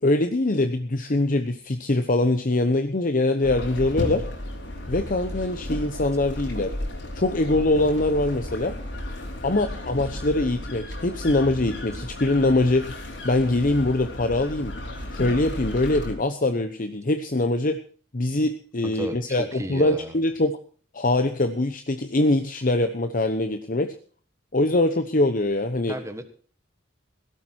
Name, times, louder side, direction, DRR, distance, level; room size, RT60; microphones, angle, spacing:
voice 1, 0.0-4.2 4.9-6.7 7.2-8.8 9.4-13.0 13.2-14.7 15.1-17.8 18.1-20.5 20.9-23.9 24.5-26.0, left 2 dB, 45° left, 8 dB, 1.0 m, -23 dB
sound 1, 3.4-16.1, left 1 dB, 65° left, 4.9 m, -34 dB
voice 2, 18.8-20.1 25.9-26.2, right 1 dB, 15° right, 7 dB, 1.4 m, -33 dB
17.5 x 12.5 x 4.5 m, 0.42 s
head